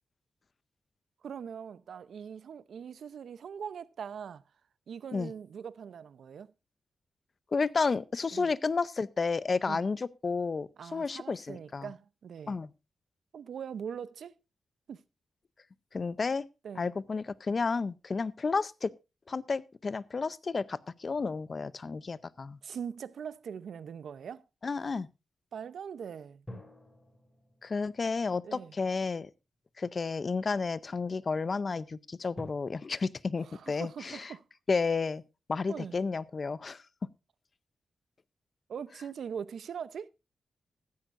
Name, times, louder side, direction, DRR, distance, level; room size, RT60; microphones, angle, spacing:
voice 1, 1.2-4.4 4.9-6.5 8.3-8.5 9.7-9.8 10.8-12.6 13.3-14.4 14.9-15.0 16.6-16.9 22.6-24.4 25.5-26.4 28.4-28.7 33.4-34.4 35.7-36.0 38.7-40.1, right 7 dB, 80° right, 0.7 m, -41 dB
voice 2, 7.5-11.9 12.5-12.7 15.9-16.4 16.8-18.9 19.3-22.6 24.6-25.1 27.6-29.3 29.8-34.3 34.7-35.2 35.5-36.8, left 4 dB, 40° left, 0.6 m, -31 dB
sound 1, 21.0-23.6 26.4-29.8 30.5-30.6 32.3-32.4, left 1 dB, 10° left, 3.1 m, -52 dB
15.0 x 13.5 x 2.6 m
wide cardioid pair, 125°, 0 cm